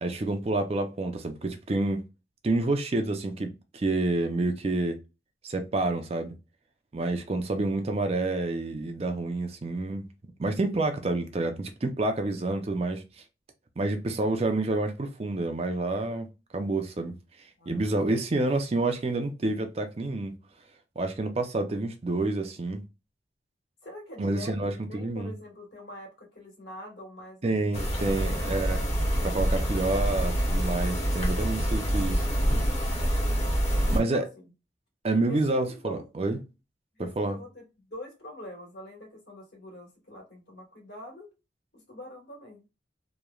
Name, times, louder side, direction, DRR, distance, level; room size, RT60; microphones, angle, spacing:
voice 1, 0.0-2.0 2.4-5.0 5.4-6.3 6.9-10.1 10.4-13.0 13.8-16.3 16.5-17.1 17.7-20.3 21.0-22.8 24.2-25.3 27.4-28.8 29.2-32.2 33.9-34.3 35.0-36.4 37.2-37.4, right 2 dB, 35° right, 0.4 m, -28 dB
voice 2, 17.6-18.2 23.8-28.8 32.8-33.5 33.8-34.3 35.3-36.0 36.9-41.3 41.7-42.6, left 1 dB, 65° left, 1.5 m, -45 dB
sound 1, 27.7-34.0, equal, 35° left, 0.8 m, -26 dB
3.0 x 2.1 x 2.3 m
head